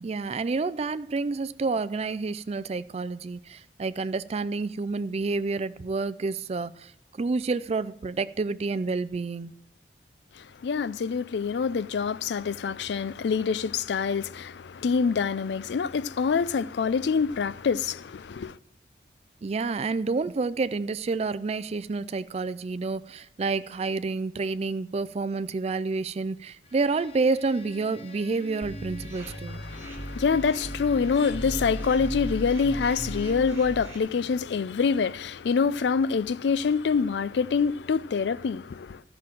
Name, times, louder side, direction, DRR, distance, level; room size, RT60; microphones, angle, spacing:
voice 1, 0.0-6.9 7.2-9.5 19.4-29.6, right 3 dB, 35° right, 0.4 m, -29 dB
voice 2, 10.3-18.6 29.2-39.0, left 5 dB, 70° left, 0.4 m, -26 dB
Bowed string instrument, 26.6-33.6, equal, 35° left, 0.9 m, -44 dB
sound 1, 28.6-34.0, right 1 dB, 15° right, 3.2 m, -37 dB
13.5 x 5.9 x 7.5 m
head